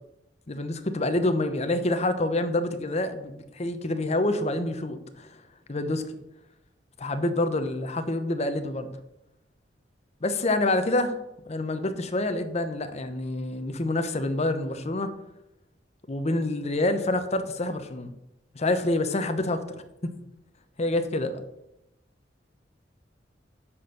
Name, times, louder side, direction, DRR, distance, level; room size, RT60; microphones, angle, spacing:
voice 1, 0.5-5.3 5.7-6.0 7.0-9.0 10.2-11.1 11.5-15.1 16.1-18.1 18.5-19.6 20.8-21.4, left 2 dB, 35° left, 9 dB, 0.8 m, -27 dB
10.0 x 4.3 x 6.5 m, 0.90 s
head